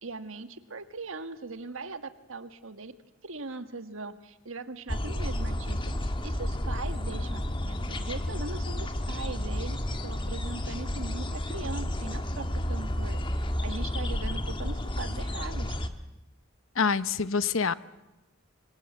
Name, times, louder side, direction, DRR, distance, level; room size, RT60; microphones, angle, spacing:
voice 1, 0.0-2.9 3.2-15.8, right 3 dB, 65° right, 10 dB, 1.7 m, -40 dB
sound 1, 4.9-15.9, left 1 dB, 25° left, 1.4 m, -31 dB
voice 2, 16.8-17.7, left 5 dB, 65° left, 15 dB, 0.9 m, -26 dB
26.0 x 25.5 x 7.9 m, 1.0 s
head